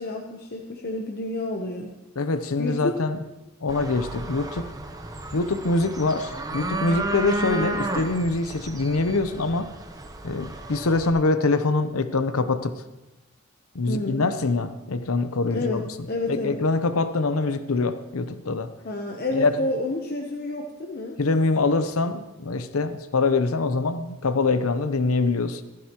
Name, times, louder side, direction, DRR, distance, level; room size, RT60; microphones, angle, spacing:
voice 1, 0.0-1.9 2.6-2.9 13.9-14.3 15.5-16.6 18.8-21.2, left 2 dB, 45° left, 0 dB, 0.9 m, -29 dB
voice 2, 2.2-3.2 3.6-4.7 5.3-9.7 10.2-12.8 13.7-15.8 16.3-18.7 19.3-19.5 21.2-25.6, left 3 dB, 90° left, 11 dB, 0.8 m, -24 dB
sound 1, 3.7-11.1, right 2 dB, 15° right, 0.8 m, -33 dB
15.5 x 14.0 x 3.0 m, 1.0 s
head